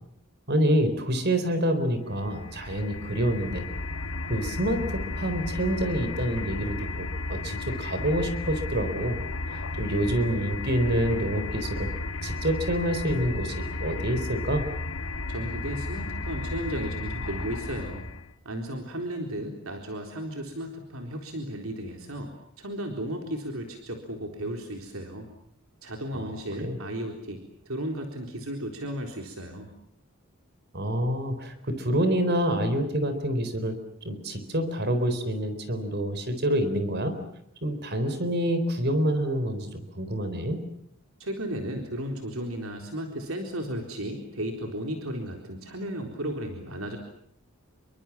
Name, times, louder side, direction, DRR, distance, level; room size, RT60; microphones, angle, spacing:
voice 1, 0.5-3.6 4.3-9.2 9.5-11.9 12.2-14.7 26.1-26.3 26.6-26.8 30.7-33.8 34.0-37.1 37.6-40.6, right 1 dB, 50° right, 10 dB, 4.0 m, -27 dB
sound 1, 2.1-18.3, left 2 dB, 70° left, 2.0 m, -34 dB
voice 2, 15.3-18.1 18.4-22.3 22.6-25.3 25.8-29.7 41.2-47.0, right 1 dB, 70° right, 3 dB, 4.0 m, -34 dB
28.0 x 24.5 x 7.4 m, 0.72 s
head